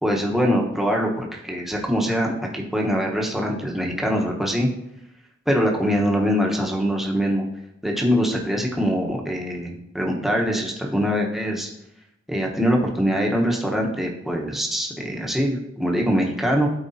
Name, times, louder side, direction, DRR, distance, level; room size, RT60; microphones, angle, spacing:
voice 1, 0.0-4.7 5.5-7.4 7.8-11.7 12.3-16.7, equal, ahead, -1 dB, 1.0 m, -23 dB
12.0 x 4.6 x 2.7 m, 0.81 s
head